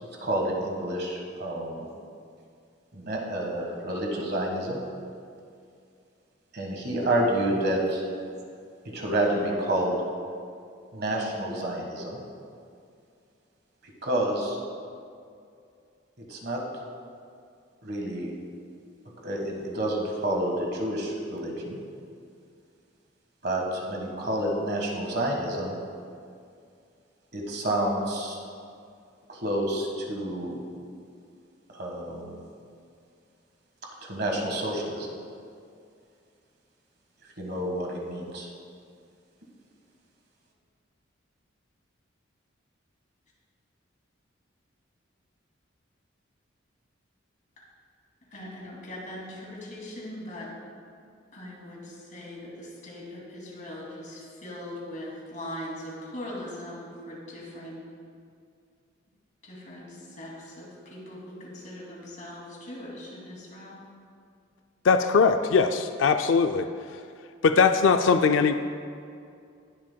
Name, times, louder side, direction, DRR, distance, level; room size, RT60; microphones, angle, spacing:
voice 1, 0.0-1.9 2.9-4.8 6.5-8.0 8.9-9.9 10.9-12.2 14.0-14.6 16.2-16.6 17.8-18.3 19.2-21.8 23.4-25.7 27.3-28.4 29.3-30.6 31.7-32.4 34.0-35.1 37.4-38.5, right 1 dB, 50° right, 0 dB, 1.6 m, -29 dB
voice 2, 48.3-50.5 51.3-57.8 59.4-63.8, left 1 dB, 40° left, -5 dB, 2.6 m, -40 dB
voice 3, 64.8-66.7 67.4-68.6, left 5 dB, 70° left, 7 dB, 0.4 m, -20 dB
20.0 x 7.4 x 2.3 m, 2.4 s
head